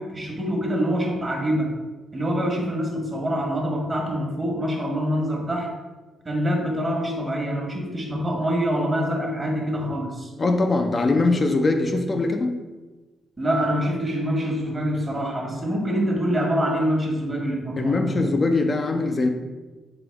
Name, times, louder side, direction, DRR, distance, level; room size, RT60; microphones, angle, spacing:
voice 1, 0.0-1.7 2.1-5.7 6.2-10.3 13.4-18.2, equal, 30° right, 1.3 m, -25 dB
voice 2, 10.4-12.6 17.8-19.3, left 3 dB, 40° left, 0.4 m, -22 dB
4.0 x 3.5 x 3.4 m
supercardioid pair, 60°, 0 cm